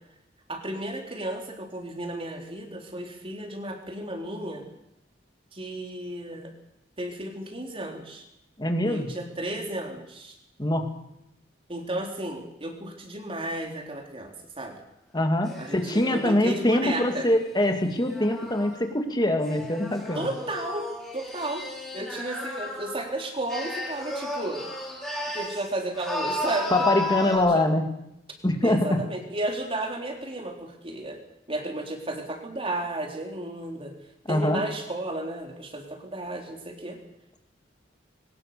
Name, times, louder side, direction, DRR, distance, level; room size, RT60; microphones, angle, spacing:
voice 1, 0.5-4.6 5.5-6.5 7.0-8.2 8.8-10.4 11.7-14.7 15.6-17.3 20.1-20.9 21.1-21.6 21.9-24.6 25.3-26.7 27.3-27.6 28.6-31.2 31.5-33.9 34.3-37.0, right 1 dB, 30° right, 3 dB, 3.8 m, -33 dB
voice 2, 8.6-9.1 10.6-10.9 15.1-20.3 26.7-27.8 28.4-29.0 34.3-34.6, left 1 dB, 25° left, 5 dB, 2.4 m, -24 dB
sound 1, 15.5-18.8 19.4-23.1 23.5-25.7 25.9-27.4, left 1 dB, 5° left, 5.2 m, -34 dB
22.0 x 19.5 x 6.9 m, 0.86 s
head